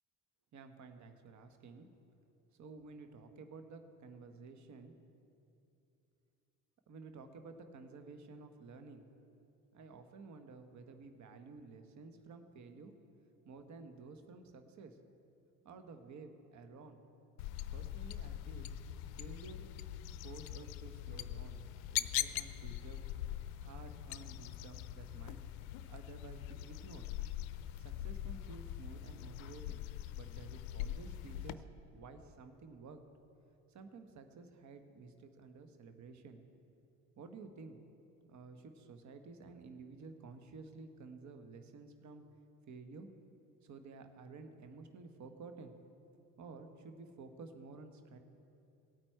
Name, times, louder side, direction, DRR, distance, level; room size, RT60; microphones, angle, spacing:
voice 1, 0.5-1.9 2.6-4.9 6.9-9.0 9.7-12.9 13.4-15.0 15.6-17.0 17.7-18.7 19.2-19.7 20.2-21.6 21.9-23.0 23.6-25.4 25.9-27.1 27.8-29.8 30.1-33.0 33.7-36.4 37.2-37.8 38.2-42.2 42.7-43.1 43.6-45.7 46.4-48.2, right 4 dB, 35° right, 7 dB, 1.2 m, -52 dB
sound 1, 17.4-31.5, left 13 dB, 60° left, 0.6 m, -42 dB
17.0 x 8.7 x 4.5 m, 2.7 s
figure-of-eight pair, 60°, 47 cm